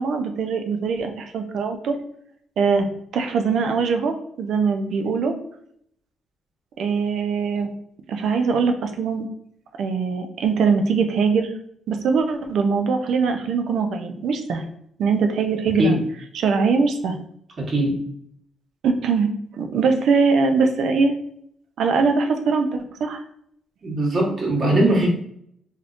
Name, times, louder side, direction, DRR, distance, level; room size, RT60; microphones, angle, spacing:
voice 1, 0.0-1.9 2.6-2.8 3.1-5.3 6.8-7.7 8.1-9.3 9.8-11.5 11.9-14.6 15.0-16.0 16.3-17.2 18.8-21.1 21.8-23.2, right 5 dB, 70° right, 5 dB, 0.4 m, -22 dB
voice 2, 17.6-17.9 23.8-25.1, right 1 dB, 40° right, -4 dB, 1.3 m, -20 dB
3.4 x 2.6 x 2.5 m, 0.69 s
cardioid pair, 90°, 0 cm